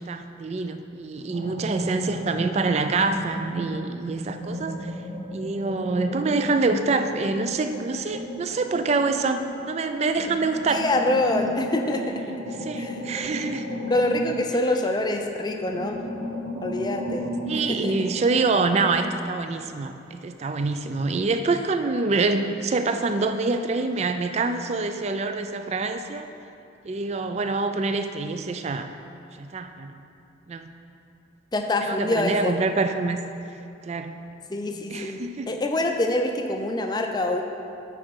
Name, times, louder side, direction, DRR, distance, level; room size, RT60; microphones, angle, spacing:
voice 1, 0.0-4.9 5.3-10.8 12.6-13.7 17.5-26.3 26.8-28.9 29.4-29.9 30.5-30.7 31.8-33.2 33.9-34.2 34.9-35.5, right 3 dB, 35° right, 8 dB, 0.3 m, -26 dB
sound 1, 1.3-3.7 4.1-9.7 10.2-15.2 15.5-18.9, equal, 75° right, 1.3 m, -34 dB
voice 2, 10.7-12.0 12.8-13.0 13.9-16.0 16.6-17.3 17.5-17.9 31.5-32.5 34.5-37.4, left 1 dB, 20° left, 4 dB, 0.5 m, -25 dB
8.4 x 4.9 x 4.6 m, 2.6 s
head